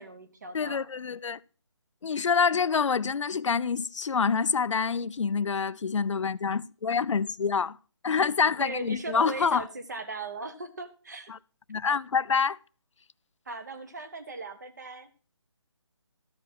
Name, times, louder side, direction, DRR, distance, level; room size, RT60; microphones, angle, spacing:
voice 1, 0.0-0.9 8.6-11.3 13.5-15.1, right 3 dB, 35° right, 1.0 m, -38 dB
voice 2, 0.5-1.4 2.0-7.8 8.0-9.6 11.3-11.4 11.7-12.6, left 5 dB, 90° left, 0.4 m, -26 dB
13.0 x 5.0 x 6.0 m
hypercardioid pair, 175°, 15 cm